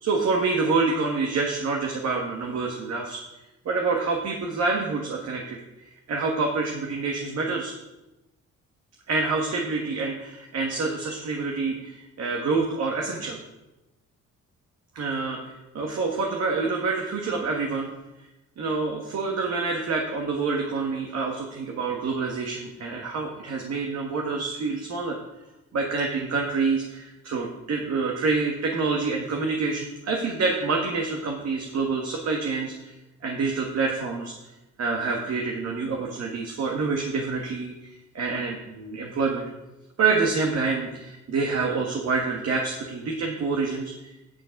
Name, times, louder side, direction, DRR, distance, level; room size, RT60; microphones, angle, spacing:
voice 1, 0.0-3.2 3.6-5.6 6.1-7.7 9.1-13.4 14.9-17.9 18.6-25.2 25.7-32.9 33.2-34.3 34.8-39.4 40.0-43.9, right 4 dB, 55° right, 0 dB, 1.5 m, -27 dB
9.6 x 6.9 x 5.2 m, 1.0 s
cardioid pair, 90°, 30 cm